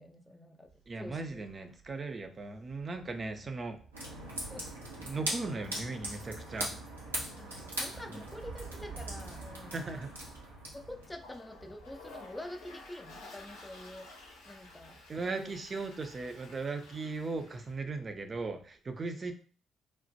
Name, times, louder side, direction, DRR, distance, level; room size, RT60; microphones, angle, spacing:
voice 1, 0.0-0.7 1.0-1.5 4.5-4.7 7.4-9.9 10.7-14.1 14.5-15.6, left 1 dB, 15° left, 5 dB, 0.5 m, -47 dB
Thunder, 0.7-18.7, right 4 dB, 70° right, 0.9 m, -53 dB
voice 2, 0.9-3.8 5.0-6.7 8.1-8.2 9.7-10.1 15.1-19.3, right 3 dB, 40° right, 7 dB, 0.4 m, -38 dB
sound 1, 3.9-11.1, right 1 dB, 90° right, 0.6 m, -40 dB
Toilet flush, 11.0-17.8, left 3 dB, 75° left, 0.6 m, -52 dB
3.1 x 2.1 x 2.7 m, 0.42 s
figure-of-eight pair, 40°, 0 cm